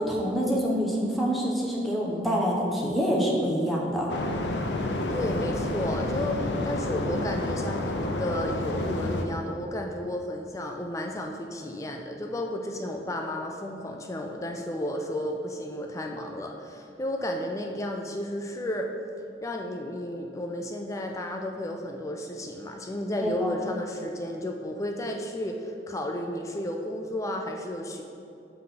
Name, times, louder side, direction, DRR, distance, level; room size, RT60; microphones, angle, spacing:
voice 1, 0.0-4.1 23.2-23.5, equal, ahead, -4 dB, 0.9 m, -26 dB
sound 1, 4.1-9.2, left 2 dB, 80° left, 0.5 m, -29 dB
voice 2, 5.1-18.9 19.4-28.0, left 1 dB, 20° left, 2 dB, 0.3 m, -32 dB
5.7 x 3.7 x 5.8 m, 2.7 s
head